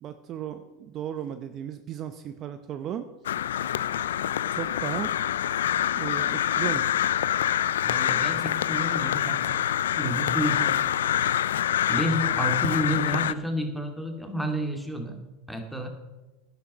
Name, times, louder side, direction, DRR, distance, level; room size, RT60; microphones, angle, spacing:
voice 1, 0.0-3.1 4.5-5.1 5.9-7.0, right 10 dB, 40° right, 10 dB, 0.7 m, -35 dB
Crow, 3.2-13.3, left 10 dB, 80° left, 0.4 m, -26 dB
voice 2, 7.8-9.6 9.9-11.1 11.9-15.2 15.5-15.9, right 1 dB, ahead, 4 dB, 2.5 m, -30 dB
11.0 x 10.5 x 5.5 m, 1.1 s
hypercardioid pair, 90°, 0 cm